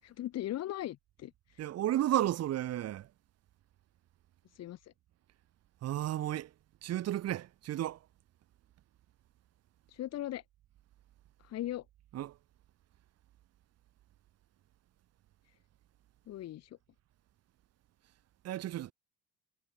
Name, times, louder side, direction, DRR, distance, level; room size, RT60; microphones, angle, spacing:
voice 1, 0.0-1.6 4.5-4.9 9.9-10.4 11.4-11.8 16.3-16.8, left 13 dB, 60° left, 6.0 m, -39 dB
voice 2, 1.6-3.1 5.8-6.5 6.8-8.0 12.1-12.3 18.4-18.9, right 13 dB, 55° right, 5.2 m, -33 dB
cardioid pair, 165°, 30 cm